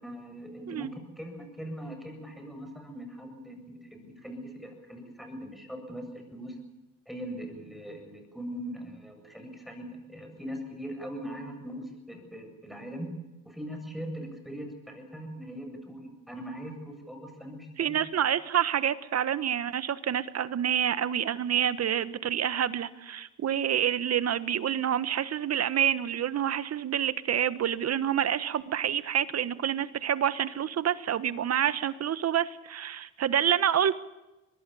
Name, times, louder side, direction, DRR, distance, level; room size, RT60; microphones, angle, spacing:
voice 1, 0.0-6.0 6.3-6.6 7.1-13.1 13.4-18.0, equal, ahead, 4 dB, 7.7 m, -41 dB
voice 2, 17.8-34.0, right 9 dB, 55° right, 15 dB, 1.3 m, -28 dB
24.0 x 20.5 x 7.0 m, 1.0 s
cardioid pair, 90°, 30 cm